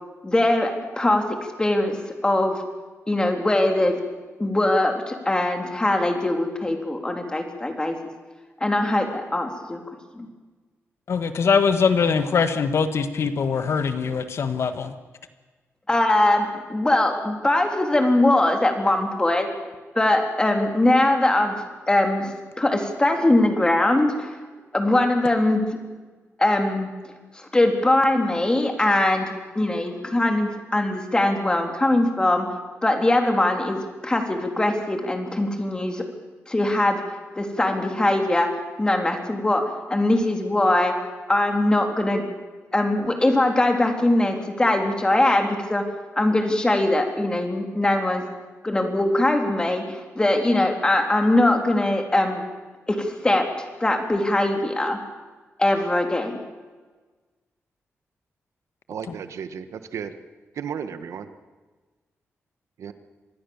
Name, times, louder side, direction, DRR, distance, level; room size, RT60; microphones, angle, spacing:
voice 1, 0.2-2.6 3.1-4.0 4.4-7.9 8.6-9.8 10.1-10.3 15.9-19.5 19.9-24.4 24.7-25.8 26.4-26.9 27.3-32.5 32.8-36.0 36.5-37.0 37.3-39.6 39.9-40.9 41.3-42.3 42.7-45.8 46.1-48.2 48.6-52.4 52.9-55.0 55.6-56.4, left 1 dB, 15° left, 4 dB, 3.5 m, -21 dB
voice 2, 11.1-14.9, left 5 dB, 65° left, 10 dB, 1.7 m, -22 dB
voice 3, 58.9-60.1 60.5-61.2 62.8-62.9, right 7 dB, 90° right, 11 dB, 1.5 m, -33 dB
25.5 x 20.5 x 7.3 m, 1.3 s
wide cardioid pair, 120°, 5 cm